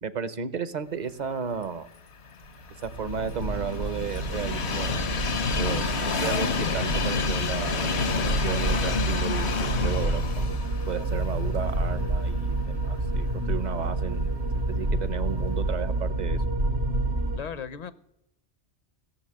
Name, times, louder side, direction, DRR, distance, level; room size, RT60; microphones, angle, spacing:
voice 1, 0.0-1.9 2.8-5.2 5.6-7.9 8.2-10.6 10.9-16.4, right 6 dB, 45° right, 13 dB, 0.9 m, -34 dB
Train, 2.3-12.4 12.8-12.9 14.0-14.1, left 5 dB, 70° left, 1.3 m, -29 dB
sound 1, 2.8-17.4, right 1 dB, 80° right, 2.6 m, -29 dB
voice 2, 17.4-17.9, left 7 dB, 40° left, 14 dB, 0.8 m, -35 dB
17.0 x 7.2 x 9.9 m, 0.85 s
omnidirectional pair, 1.2 m